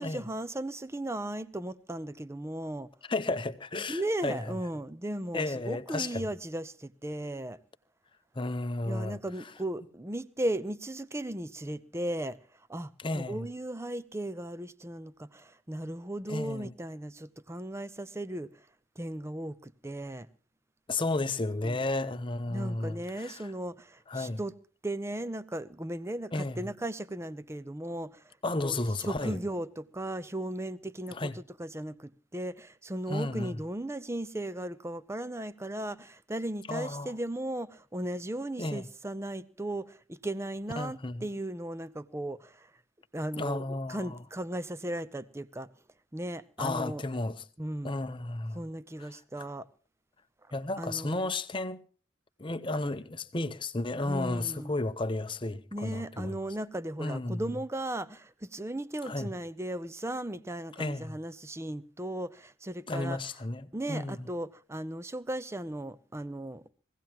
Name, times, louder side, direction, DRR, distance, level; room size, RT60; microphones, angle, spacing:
voice 1, 0.0-2.9 3.9-7.6 8.8-12.4 12.7-18.7 19.0-20.3 21.5-21.8 22.5-24.6 24.8-42.7 43.1-45.7 46.1-47.0 47.6-48.0 48.5-49.7 50.8-51.3 52.8-53.0 54.0-54.7 55.7-63.2 63.7-66.6, right 1 dB, 15° right, 0.6 m, -36 dB
voice 2, 3.1-4.4 5.3-6.2 8.4-9.2 13.0-13.5 16.3-16.7 20.9-23.4 24.1-24.4 26.3-26.6 28.4-29.4 31.1-31.3 33.1-33.6 36.7-37.1 38.6-38.8 40.8-41.3 43.4-44.1 46.6-47.4 47.8-48.6 50.5-51.8 52.4-56.4 57.0-57.4 59.1-59.3 60.8-61.2 62.9-64.2, left 2 dB, 25° left, 0.8 m, -33 dB
22.5 x 17.0 x 3.0 m
head